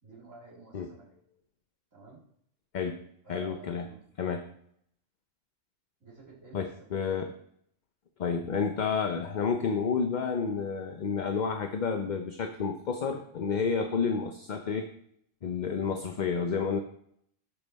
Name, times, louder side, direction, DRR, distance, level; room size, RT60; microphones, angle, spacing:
voice 1, 0.0-1.2 1.9-2.2 3.2-4.1 6.0-6.9, right 4 dB, 85° right, -4 dB, 3.0 m, -51 dB
voice 2, 3.3-3.9 4.2-4.5 6.5-7.3 8.2-14.9 15.4-16.8, left 5 dB, 50° left, 6 dB, 0.6 m, -30 dB
11.5 x 5.4 x 4.1 m, 0.69 s
omnidirectional pair, 1.3 m